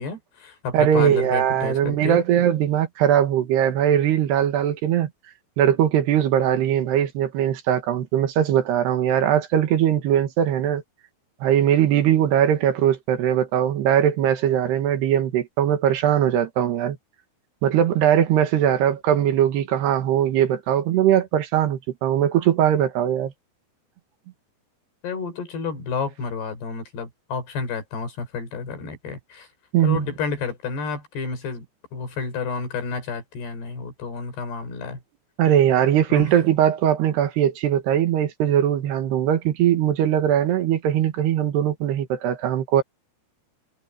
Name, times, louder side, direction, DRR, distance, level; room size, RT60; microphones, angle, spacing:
voice 1, 0.0-2.2 25.0-29.5 29.8-31.7 31.9-35.0 36.1-36.3, left 5 dB, 80° left, 6.9 m, -30 dB
voice 2, 0.7-5.1 5.6-10.8 11.4-17.0 17.6-23.3 29.7-30.1 35.4-42.8, right 10 dB, 80° right, 3.8 m, -20 dB
omnidirectional pair, 4.7 m